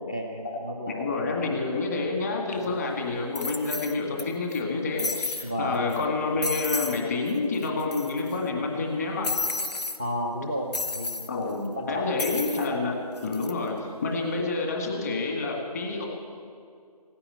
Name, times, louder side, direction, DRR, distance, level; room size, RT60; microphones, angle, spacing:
voice 1, 0.1-1.0 1.2-1.6 5.4-5.8 10.0-12.0, equal, 10° left, 1 dB, 0.6 m, -33 dB
voice 2, 0.9-9.4 11.3-13.0 13.2-16.1, left 3 dB, 25° left, 0 dB, 2.0 m, -28 dB
sound 1, 2.5-2.6 3.3-4.2 4.5-4.6 5.0-5.5 5.9-6.0 6.4-7.0 7.3-7.4 7.6-8.3 9.2-10.0 10.7-11.3 12.2-12.7 13.2-13.5, left 2 dB, 80° left, 1.3 m, -31 dB
16.0 x 9.8 x 8.9 m, 2.3 s
figure-of-eight pair, 160°, 20 cm